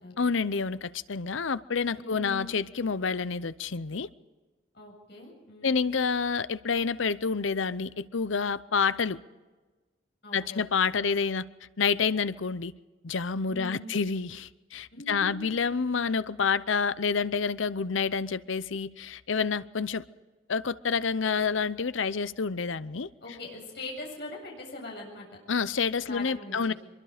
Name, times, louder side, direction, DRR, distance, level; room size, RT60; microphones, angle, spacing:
voice 1, 0.2-4.1 5.6-9.2 10.3-11.4 11.8-12.7 13.0-20.0 20.5-23.1 25.5-26.7, left 5 dB, 70° left, 16 dB, 0.7 m, -28 dB
voice 2, 2.0-2.5 4.7-5.9 10.2-10.6 13.5-13.9 14.9-15.4 23.2-25.3 26.1-26.7, left 2 dB, 55° left, -1 dB, 7.8 m, -42 dB
24.5 x 23.5 x 5.0 m, 1.2 s
head